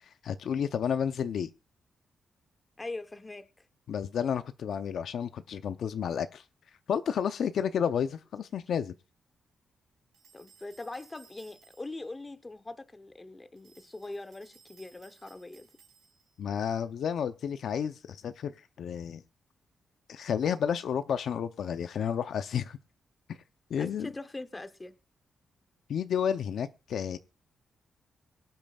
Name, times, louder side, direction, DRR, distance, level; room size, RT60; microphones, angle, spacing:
voice 1, 0.2-1.5 3.9-6.4 6.9-8.9 16.4-19.2 20.1-22.8 23.7-24.1 25.9-27.2, left 8 dB, 65° left, 0.6 m, -31 dB
voice 2, 2.8-3.5 10.3-15.7 23.8-24.9, left 2 dB, 15° left, 0.8 m, -42 dB
sound 1, 10.1-12.1 13.6-16.4, right 6 dB, 80° right, 4.7 m, -60 dB
23.0 x 8.8 x 2.3 m
wide cardioid pair, 150°, 0 cm